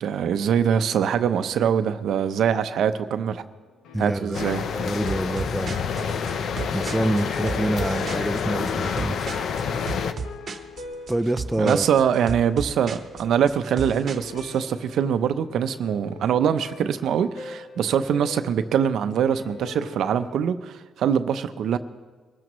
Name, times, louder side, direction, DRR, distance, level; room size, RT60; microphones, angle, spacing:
voice 1, 0.0-3.4 4.0-4.6 11.6-21.8, right 8 dB, 70° right, 10 dB, 0.7 m, -23 dB
sound 1, 2.9-20.3, left 4 dB, 90° left, 1.4 m, -44 dB
voice 2, 3.9-4.5 4.8-5.8 6.7-9.2 11.1-11.8, right 1 dB, 10° right, 8 dB, 0.5 m, -26 dB
sound 2, 4.3-10.1, left 6 dB, 65° left, 0.7 m, -28 dB
sound 3, 5.1-14.6, right 4 dB, 50° right, 1.0 m, -35 dB
23.0 x 14.0 x 3.1 m, 1.4 s
cardioid pair, 90°, 0 cm